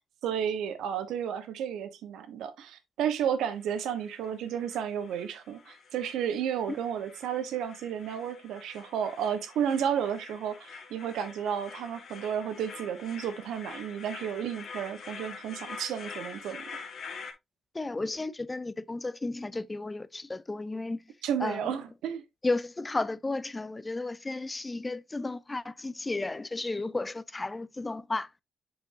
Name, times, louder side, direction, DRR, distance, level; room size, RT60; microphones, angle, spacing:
voice 1, 0.2-16.6 21.2-22.2, right 8 dB, 85° right, 1.2 m, -32 dB
sound 1, 3.5-17.3, left 5 dB, 55° left, 2.0 m, -46 dB
voice 2, 17.7-21.1 21.4-21.7 22.4-28.3, left 2 dB, 20° left, 0.5 m, -33 dB
7.7 x 5.2 x 2.7 m
cardioid pair, 90°, 0 cm